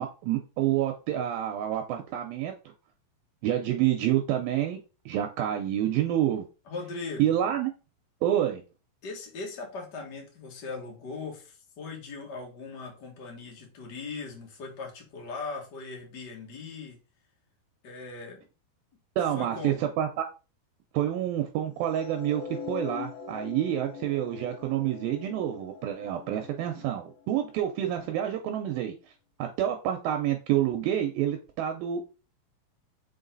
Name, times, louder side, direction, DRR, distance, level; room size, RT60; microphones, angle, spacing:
voice 1, 0.0-2.5 3.4-4.8 5.1-6.5 7.2-7.7 8.2-8.6 19.2-20.3 20.9-29.0 29.4-32.0, right 11 dB, 80° right, 5 dB, 2.4 m, -28 dB
voice 2, 6.7-7.3 9.0-17.0 17.8-18.4 19.4-19.8, left 4 dB, 40° left, 0 dB, 1.7 m, -39 dB
sound 1, 21.8-28.1, left 5 dB, 75° left, 2.5 m, -42 dB
5.7 x 4.8 x 3.9 m, 0.33 s
omnidirectional pair, 4.5 m